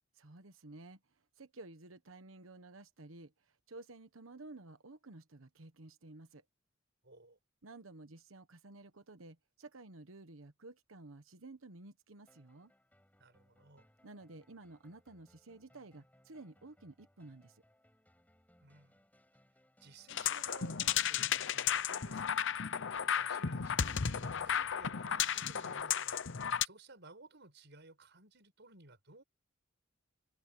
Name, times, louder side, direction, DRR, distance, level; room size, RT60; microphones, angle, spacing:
voice 1, 0.2-1.0 1.4-6.4 7.6-12.7 14.0-17.6, right 2 dB, 85° right, 1.2 m, -53 dB
voice 2, 7.0-7.4 13.2-13.9 18.6-19.1 19.8-22.4 23.2-26.2 26.6-29.2, right 3 dB, 60° right, 6.8 m, -57 dB
sound 1, 12.3-25.8, left 1 dB, 10° left, 7.4 m, -69 dB
sound 2, 20.1-26.6, left 8 dB, 65° left, 0.8 m, -34 dB
head